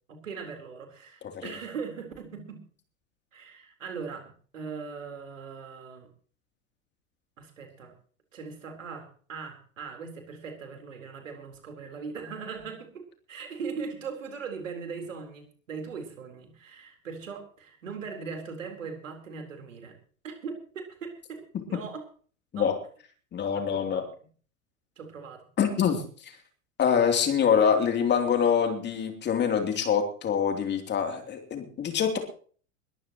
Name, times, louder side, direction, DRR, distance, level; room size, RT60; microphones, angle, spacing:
voice 1, 0.1-2.6 3.3-6.1 7.4-7.9 8.3-12.9 13.3-19.9 20.2-21.4 21.7-22.0 22.5-22.8 23.5-24.0 25.0-25.4, right 5 dB, 70° right, 4 dB, 4.0 m, -40 dB
voice 2, 23.3-24.0 25.6-26.0 26.8-32.2, left 7 dB, 25° left, 5 dB, 3.1 m, -25 dB
21.5 x 14.0 x 3.0 m, 0.44 s
figure-of-eight pair, 85°, 40 cm